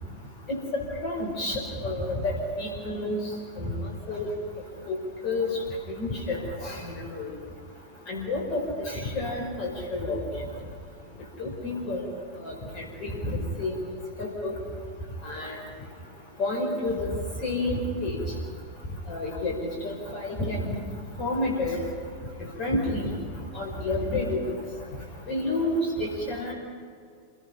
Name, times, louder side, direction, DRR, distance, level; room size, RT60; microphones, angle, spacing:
voice 1, 0.5-3.2 3.6-4.3 4.9-5.0 5.2-5.5 6.0-7.3 8.1-10.2 11.4-12.0 12.4-13.8 14.2-14.5 15.2-15.6 16.4-17.1 17.4-18.2 19.1-19.5 19.8-20.8 21.2-21.8 22.6-23.1 23.5-24.5 25.3-26.5, left 2 dB, 40° left, -1 dB, 4.8 m, -29 dB
26.5 x 17.5 x 5.7 m, 2.2 s
figure-of-eight pair, 90°, 0 cm